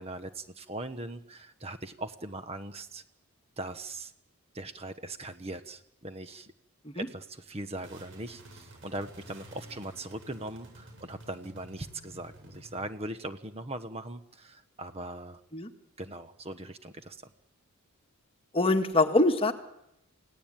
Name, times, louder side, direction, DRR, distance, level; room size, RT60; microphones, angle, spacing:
voice 1, 0.0-3.0 3.6-4.1 4.5-6.5 6.9-15.4 16.0-17.2, right 2 dB, 25° right, 10 dB, 1.2 m, -40 dB
sound 1, 7.7-12.9, right 1 dB, 55° right, 7.9 m, -51 dB
voice 2, 18.5-19.5, left 2 dB, 25° left, 7 dB, 1.8 m, -24 dB
29.0 x 18.0 x 9.1 m, 0.84 s
head